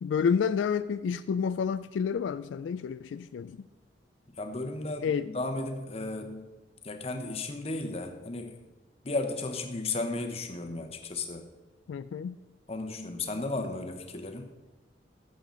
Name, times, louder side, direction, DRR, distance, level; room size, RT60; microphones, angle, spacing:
voice 1, 0.0-3.6 5.0-5.3 11.9-12.4, left 6 dB, 85° left, 0.3 m, -29 dB
voice 2, 4.3-6.5 6.8-8.6 9.0-11.5 12.7-14.5, left 2 dB, 35° left, 0.9 m, -34 dB
12.5 x 7.7 x 3.8 m
head